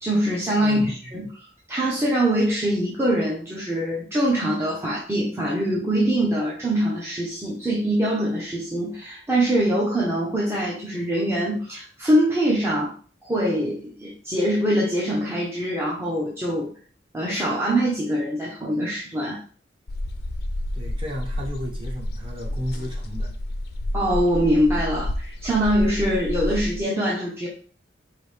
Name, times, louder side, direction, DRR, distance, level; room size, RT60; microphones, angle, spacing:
voice 1, 0.0-12.9 13.2-16.7 17.1-19.4 23.9-27.5, right 1 dB, 15° right, -5 dB, 0.7 m, -23 dB
voice 2, 0.6-1.1 20.7-23.3, equal, 30° right, -3 dB, 1.1 m, -33 dB
sound 1, 19.9-26.8, left 1 dB, 65° left, 0.5 m, -30 dB
4.8 x 2.7 x 3.3 m, 0.42 s
head